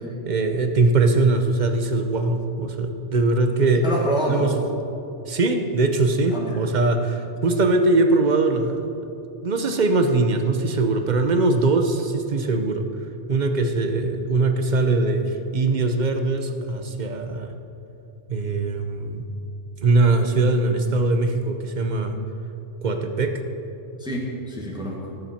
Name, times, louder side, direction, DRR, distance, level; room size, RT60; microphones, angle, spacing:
voice 1, 0.2-3.8 4.3-4.5 5.3-8.9 9.4-12.9 13.3-17.5 18.3-19.3 19.8-22.2 22.8-23.3, right 3 dB, 40° right, 6 dB, 0.8 m, -21 dB
voice 2, 3.8-4.5 6.3-6.6 24.0-25.1, right 1 dB, 5° right, -4 dB, 1.6 m, -27 dB
18.0 x 7.4 x 4.4 m, 2.9 s
omnidirectional pair, 1.3 m